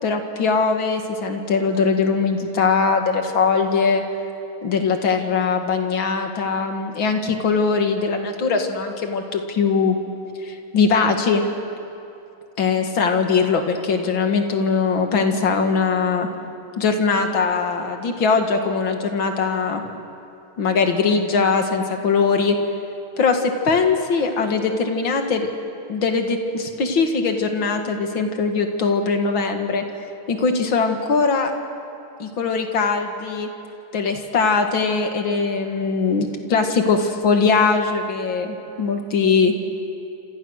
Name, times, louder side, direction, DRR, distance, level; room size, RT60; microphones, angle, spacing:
voice 1, 0.0-4.0 4.6-10.0 10.4-11.4 12.6-16.3 16.8-19.8 20.6-22.6 23.2-25.5 25.9-29.8 30.3-31.5 32.2-33.5 33.9-39.5, left 5 dB, 65° left, 4 dB, 2.6 m, -21 dB
27.5 x 27.5 x 6.5 m, 2.8 s
omnidirectional pair, 2.3 m